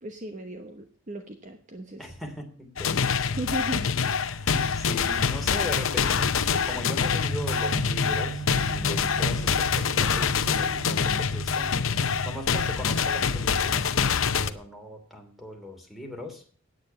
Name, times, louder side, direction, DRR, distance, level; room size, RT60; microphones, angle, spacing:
voice 1, 0.0-2.0 3.4-3.9, right 2 dB, 40° right, 5 dB, 1.0 m, -36 dB
voice 2, 2.0-3.2 4.3-11.7 12.2-13.9 14.3-16.4, left 1 dB, ahead, 3 dB, 2.9 m, -39 dB
sound 1, 2.8-14.5, left 6 dB, 90° left, 0.8 m, -25 dB
sound 2, 7.2-12.4, right 6 dB, 85° right, 5.9 m, -38 dB
9.4 x 8.8 x 6.8 m, 0.44 s
head